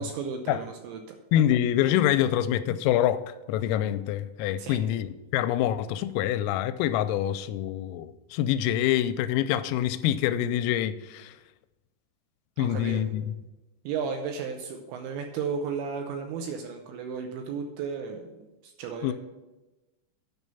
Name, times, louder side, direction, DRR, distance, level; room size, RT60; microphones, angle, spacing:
voice 1, 0.0-1.2 4.6-4.8 12.6-13.0 13.8-19.1, right 6 dB, 80° right, 4 dB, 2.8 m, -34 dB
voice 2, 1.3-11.3 12.6-13.3 19.0-19.1, left 11 dB, 85° left, 12 dB, 3.2 m, -26 dB
9.5 x 5.4 x 7.0 m, 1.1 s
omnidirectional pair, 5.9 m